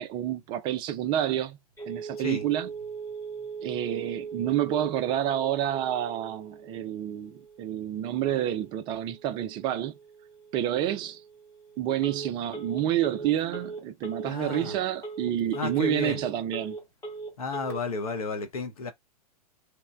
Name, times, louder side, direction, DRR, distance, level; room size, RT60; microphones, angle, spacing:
voice 1, 0.0-1.6 1.9-2.7 3.6-9.9 10.5-11.2 11.8-16.8, right 11 dB, 25° right, 0.3 m, -29 dB
Telephone, 1.8-17.8, right 4 dB, 15° left, 0.8 m, -40 dB
voice 2, 14.3-14.8 15.5-16.2 17.4-18.9, left 4 dB, 65° left, 0.7 m, -32 dB
2.9 x 2.1 x 2.3 m
figure-of-eight pair, 100°, 20 cm